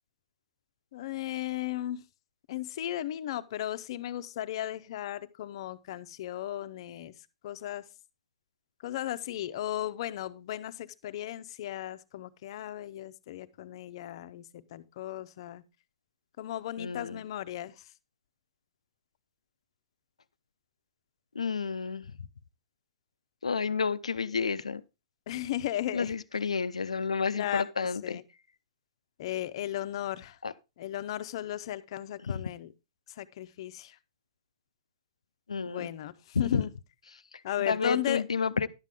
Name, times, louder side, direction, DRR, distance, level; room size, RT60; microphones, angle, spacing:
voice 1, 0.9-2.0 2.5-7.1 7.4-7.8 8.8-15.6 16.4-17.9 25.3-26.1 27.3-28.2 29.2-30.4 30.8-32.7 33.1-34.0 35.7-36.7 37.4-38.2, left 13 dB, 55° left, 0.7 m, -36 dB
voice 2, 16.8-17.2 21.3-22.1 23.4-24.8 25.9-28.2 30.4-30.5 32.2-32.4 35.5-35.9 36.3-36.6 37.3-38.7, left 5 dB, 90° left, 0.6 m, -30 dB
11.5 x 7.5 x 3.6 m
hypercardioid pair, 120°, 3 cm